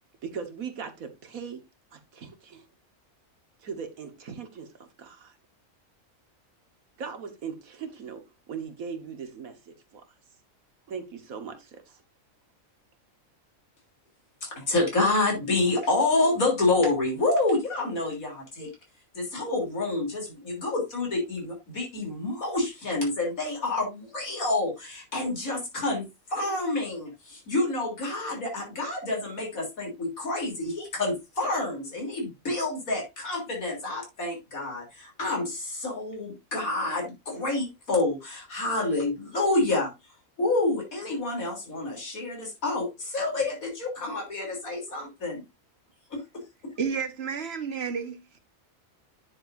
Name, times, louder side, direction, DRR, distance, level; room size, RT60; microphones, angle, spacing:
voice 1, 0.2-1.6 1.9-2.6 3.6-5.3 7.0-8.2 8.5-10.0 10.9-12.0, right 6 dB, 85° right, 1.9 m, -39 dB
voice 2, 14.4-18.7 19.2-39.9 40.4-45.4 46.1-46.4, left 2 dB, 90° left, 3.8 m, -28 dB
voice 3, 46.8-48.4, right 6 dB, 50° right, 1.5 m, -31 dB
9.9 x 7.5 x 2.6 m
omnidirectional pair, 1.4 m